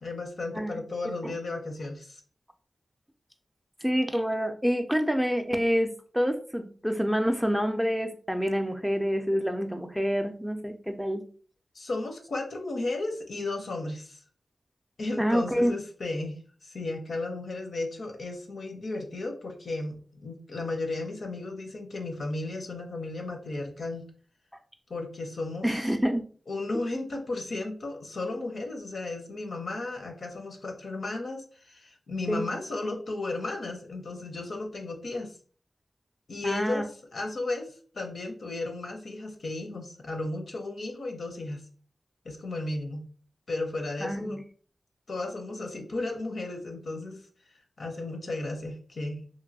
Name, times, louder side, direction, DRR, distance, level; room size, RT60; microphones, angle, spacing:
voice 1, 0.0-2.2 11.7-14.2 15.0-24.0 24.9-25.9 26.5-35.4 36.3-36.8 37.1-41.7 42.2-43.1 43.5-44.4 45.1-47.2 47.8-49.2, left 2 dB, 75° left, 4 dB, 0.6 m, -34 dB
voice 2, 3.8-11.3 15.2-15.7 25.6-26.2 32.3-32.5 36.4-36.9 44.0-44.4, equal, ahead, 5 dB, 0.3 m, -27 dB
3.0 x 2.5 x 2.7 m, 0.43 s
wide cardioid pair, 90°, 0 cm